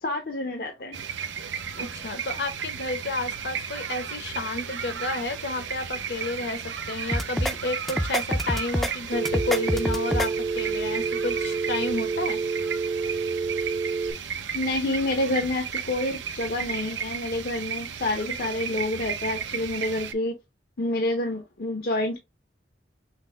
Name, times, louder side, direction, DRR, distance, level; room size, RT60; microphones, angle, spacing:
voice 1, 0.0-1.0 14.5-20.4 20.8-22.2, left 1 dB, 50° left, 0.6 m, -28 dB
sound 1, 0.9-20.1, right 7 dB, 85° right, 0.7 m, -34 dB
voice 2, 1.7-12.4, left 3 dB, 70° left, 1.0 m, -31 dB
sound 2, 7.1-7.5 7.9-8.9 9.3-10.3, equal, ahead, 0.4 m, -26 dB
Telephone, 9.1-14.1, right 4 dB, 35° right, 0.6 m, -28 dB
5.8 x 2.1 x 3.2 m
head